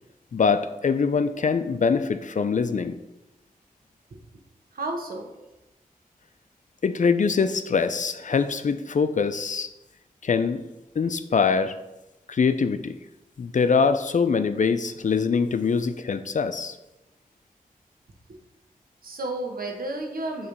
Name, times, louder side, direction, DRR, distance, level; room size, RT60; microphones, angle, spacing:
voice 1, 0.3-3.0 6.8-9.7 10.2-10.6 11.0-11.7 12.3-13.0 13.4-16.7, left 5 dB, 55° left, 11 dB, 0.5 m, -23 dB
voice 2, 4.7-5.3 18.3-18.4 19.0-20.5, right 2 dB, 70° right, 3 dB, 1.1 m, -32 dB
6.8 x 3.2 x 5.1 m, 1.0 s
cardioid pair, 40°, 15 cm